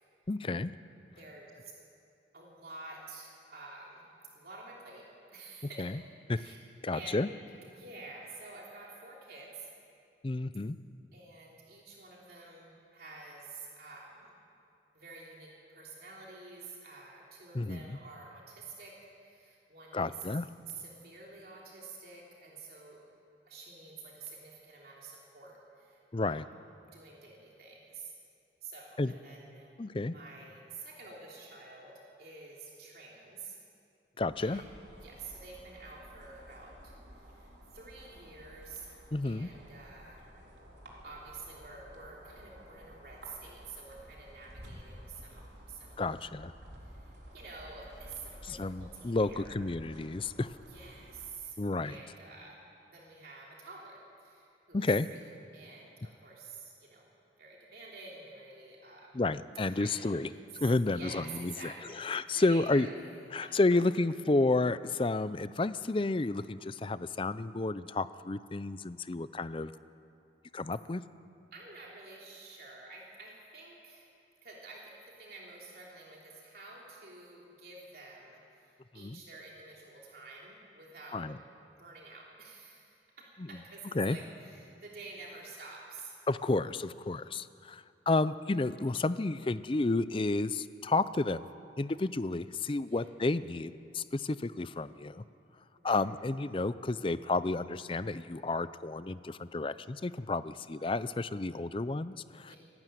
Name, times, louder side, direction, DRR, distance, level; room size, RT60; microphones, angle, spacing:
voice 1, 0.3-0.7 5.8-5.9 6.3-6.4 6.8-7.3 10.2-10.8 17.5-18.0 19.9-20.5 26.1-26.4 29.0-29.1 29.8-30.1 34.2-34.6 39.1-39.5 46.0-46.5 48.5-50.5 51.6-52.0 54.7-55.1 59.1-60.3 60.6-61.7 62.0-62.9 63.3-69.7 70.5-71.0 78.9-79.2 81.1-81.4 83.9-84.2 86.3-91.5 91.8-95.2 95.8-102.5, left 2 dB, 30° left, 15 dB, 0.5 m, -31 dB
voice 2, 1.2-1.7 2.3-4.0 4.3-5.0 5.3-5.9 6.3-6.6 6.9-7.1 7.7-9.7 11.1-14.3 14.9-18.9 19.2-20.2 20.7-23.0 23.4-26.4 26.8-28.1 28.6-29.7 30.0-33.6 34.4-34.7 34.9-40.2 41.0-46.3 46.8-49.6 50.7-51.6 51.8-52.6 52.8-55.2 55.5-57.0 57.4-59.2 59.7-62.0 62.3-62.9 63.4-63.6 71.5-74.1 74.4-74.8 75.2-81.3 81.8-82.9 83.5-86.1 92.8-93.0 95.8-96.0 102.4-102.6, right 3 dB, 55° right, -3 dB, 3.3 m, -49 dB
sound 1, 34.2-51.3, equal, 75° right, 3.9 m, -52 dB
25.5 x 12.5 x 9.2 m, 2.5 s
head